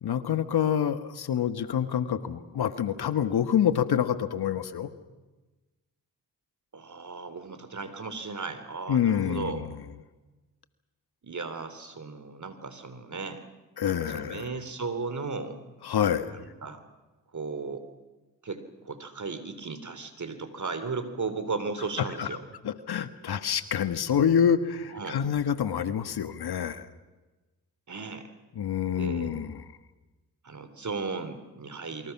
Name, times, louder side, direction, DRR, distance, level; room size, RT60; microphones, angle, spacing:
voice 1, 0.0-4.9 8.9-9.7 13.8-14.4 15.8-16.3 22.0-22.3 22.6-26.9 28.5-29.6, left 8 dB, 65° left, 11 dB, 1.6 m, -27 dB
voice 2, 6.7-9.7 11.2-13.4 13.9-15.6 16.3-16.8 17.3-17.8 18.4-22.4 24.9-25.2 27.9-28.3 29.0-29.3 30.4-32.1, right 4 dB, 45° right, 10 dB, 3.8 m, -36 dB
28.0 x 24.5 x 6.1 m, 1.2 s
hypercardioid pair, 40°, 42 cm